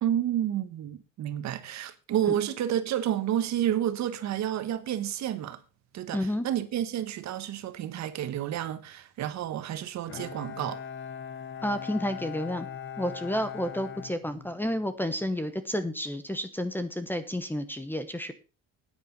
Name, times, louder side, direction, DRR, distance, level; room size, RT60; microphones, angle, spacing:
voice 1, 0.0-5.6 5.9-10.8, right 11 dB, 55° right, 1.3 m, -30 dB
voice 2, 6.1-6.5 11.6-12.7 13.0-18.3, left 1 dB, 5° left, 0.9 m, -31 dB
Bowed string instrument, 10.1-14.9, left 8 dB, 35° left, 1.4 m, -40 dB
9.6 x 9.3 x 5.9 m
cardioid pair, 155°, 34 cm